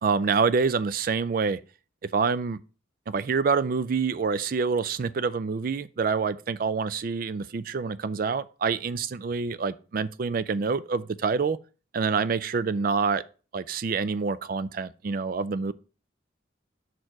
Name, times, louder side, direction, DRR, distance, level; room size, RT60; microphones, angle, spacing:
voice 1, 0.0-1.6 2.1-2.6 3.1-11.6 11.9-13.2 13.5-15.7, right 5 dB, 45° right, 0.3 m, -26 dB
6.2 x 4.5 x 4.6 m
head